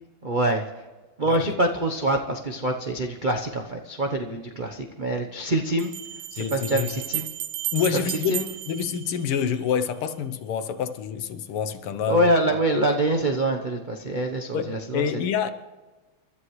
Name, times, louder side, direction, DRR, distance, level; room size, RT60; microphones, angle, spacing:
voice 1, 0.2-0.6 1.2-5.9 6.3-7.3 7.9-8.4 12.1-15.0, right 1 dB, 55° right, 0.5 m, -25 dB
Bell, 4.2-4.3 5.8-9.7, right 12 dB, 85° right, 1.7 m, -34 dB
voice 2, 6.4-6.9 7.7-12.6 14.5-15.5, left 8 dB, 80° left, 1.8 m, -27 dB
29.0 x 13.0 x 3.2 m
omnidirectional pair, 2.4 m